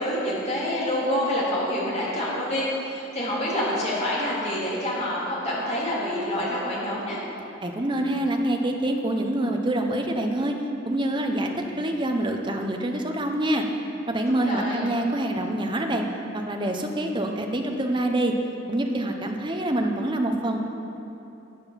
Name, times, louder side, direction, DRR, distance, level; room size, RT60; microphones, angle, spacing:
voice 1, 0.0-7.2 14.3-14.9, left 1 dB, 35° left, -6 dB, 3.2 m, -27 dB
voice 2, 7.6-10.6 10.9-13.6 14.1-16.1 16.3-18.3 18.7-20.6, right 1 dB, 25° right, 3 dB, 0.9 m, -26 dB
13.0 x 8.9 x 5.8 m, 3.0 s
head